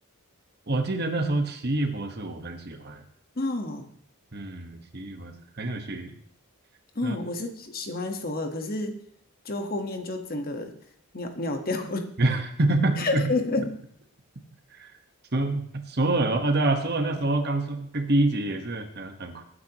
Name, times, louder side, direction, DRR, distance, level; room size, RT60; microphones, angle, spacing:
voice 1, 0.7-3.0 4.3-6.1 7.0-7.2 12.2-13.2 14.8-14.9 15.3-19.4, right 2 dB, 45° right, 6 dB, 1.3 m, -26 dB
voice 2, 3.4-3.9 6.9-9.0 9.4-10.7 11.1-12.1 13.0-13.8, left 2 dB, 40° left, 5 dB, 1.3 m, -30 dB
20.0 x 9.4 x 3.0 m, 0.64 s
head